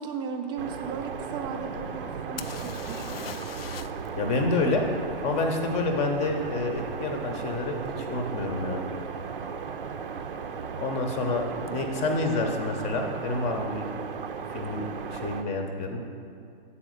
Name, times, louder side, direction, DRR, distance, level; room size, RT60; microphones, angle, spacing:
voice 1, 0.0-3.0, right 6 dB, 15° right, 4 dB, 0.4 m, -36 dB
sound 1, 0.6-15.4, right 6 dB, 65° right, 0.6 m, -36 dB
sound 2, 2.4-4.1 4.4-4.5 7.9-8.0 8.6-8.8 9.0-9.6 11.7-11.8 12.0-12.1, left 8 dB, 75° left, 0.5 m, -41 dB
voice 2, 4.2-4.9 5.2-8.8 10.8-13.9 14.5-14.8 15.1-16.0, left 2 dB, 20° left, 4 dB, 0.8 m, -28 dB
8.6 x 4.2 x 6.4 m, 2.4 s
figure-of-eight pair, 120°, 30 cm